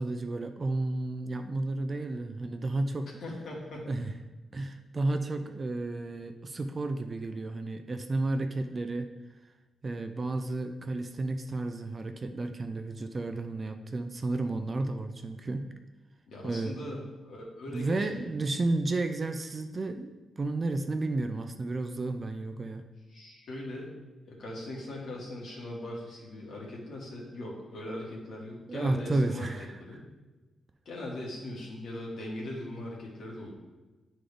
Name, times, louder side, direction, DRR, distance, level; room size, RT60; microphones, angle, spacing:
voice 1, 0.0-3.1 3.9-4.1 4.5-9.1 9.8-15.7 16.4-16.8 17.7-22.8 28.7-29.7, right 2 dB, 25° right, 7 dB, 0.3 m, -32 dB
voice 2, 3.2-3.9 16.3-18.3 23.1-23.9 24.2-29.5 29.8-30.0 30.9-33.5, left 1 dB, 55° left, -3 dB, 1.8 m, -40 dB
11.0 x 3.8 x 3.3 m, 1.2 s
wide cardioid pair, 170°, 0 cm